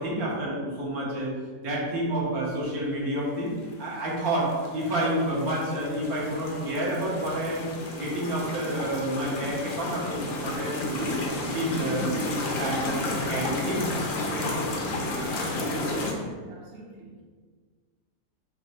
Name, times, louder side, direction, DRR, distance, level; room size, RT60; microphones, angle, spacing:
voice 1, 0.0-1.3 1.6-3.5 3.8-7.7 8.0-11.1 11.4-13.9 14.3-14.7 16.1-16.3, right 1 dB, 75° right, -5 dB, 1.6 m, -29 dB
sound 1, 4.0-16.1, left 2 dB, 65° left, 1.0 m, -32 dB
voice 2, 16.2-17.2, right 2 dB, 55° right, -1 dB, 0.8 m, -48 dB
4.2 x 2.6 x 4.2 m, 1.5 s
omnidirectional pair, 1.5 m